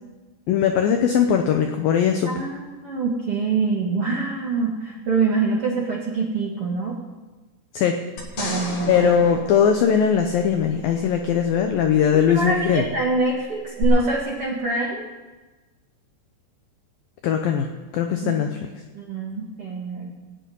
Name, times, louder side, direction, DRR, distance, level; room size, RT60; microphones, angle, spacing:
voice 1, 0.5-2.3 7.7-8.0 8.9-12.9 17.2-18.5, left 8 dB, 90° left, 5 dB, 2.0 m, -20 dB
voice 2, 2.2-6.9 8.4-9.1 12.3-15.1 18.2-18.3 18.9-20.2, right 4 dB, 55° right, -3 dB, 1.6 m, -25 dB
sound 1, 8.2-10.7 13.8-13.9, left 3 dB, 45° left, 2.5 m, -33 dB
17.5 x 7.0 x 9.1 m, 1.3 s
omnidirectional pair, 5.3 m